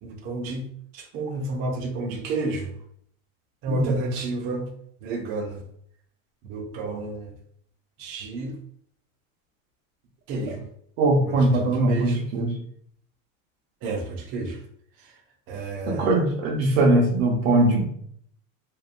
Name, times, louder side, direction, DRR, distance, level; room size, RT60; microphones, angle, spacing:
voice 1, 0.0-2.8 3.6-4.7 5.0-5.6 6.4-7.4 8.0-8.6 10.3-10.7 11.2-12.3 13.8-14.6 15.0-15.2 15.5-16.1, right 2 dB, 35° right, 0 dB, 0.4 m, -31 dB
voice 2, 11.0-12.5 15.9-17.9, right 2 dB, 85° right, 1 dB, 0.8 m, -21 dB
2.7 x 2.0 x 2.4 m, 0.65 s
supercardioid pair, 145°, 39 cm